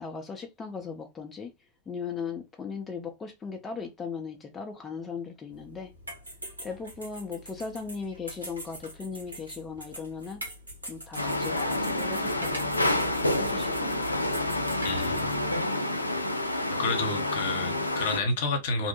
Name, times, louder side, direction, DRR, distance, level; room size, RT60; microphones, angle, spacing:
voice 1, 0.0-1.5 1.9-5.9 6.6-10.4 10.9-13.9, left 5 dB, 20° left, 0.5 m, -38 dB
sound 1, 5.5-15.4, right 1 dB, 85° right, 0.9 m, -44 dB
sound 2, 11.2-18.2, left 1 dB, 90° left, 0.3 m, -28 dB
voice 2, 14.8-15.3 16.8-18.9, left 3 dB, 60° left, 0.8 m, -30 dB
2.7 x 2.1 x 2.8 m
figure-of-eight pair, 90°, 0 cm